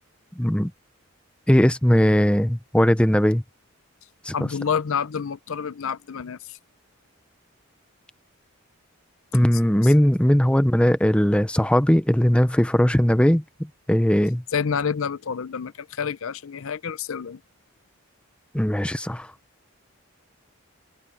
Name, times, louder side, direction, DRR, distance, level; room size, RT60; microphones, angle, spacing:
voice 1, 0.4-0.7 1.5-3.4 4.2-4.3 9.3-14.4 18.5-19.3, equal, 5° left, 0.6 m, -19 dB
voice 2, 4.3-6.6 9.8-9.9 14.5-17.4, left 6 dB, 70° left, 0.6 m, -28 dB
open air
head